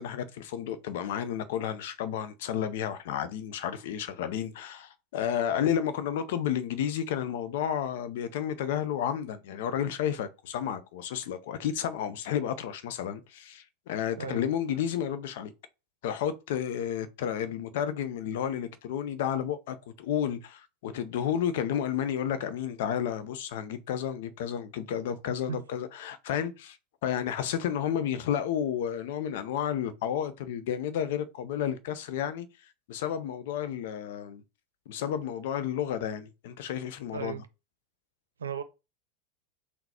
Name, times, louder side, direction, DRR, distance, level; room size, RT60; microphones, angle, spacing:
voice 1, 0.0-15.5 16.0-26.8 27.0-32.5 32.9-34.4 34.9-37.4, left 9 dB, 65° left, 0.6 m, -31 dB
voice 2, 37.1-37.5 38.4-38.6, right 7 dB, 85° right, 0.5 m, -35 dB
3.9 x 2.2 x 4.3 m
hypercardioid pair, 90°, 0 cm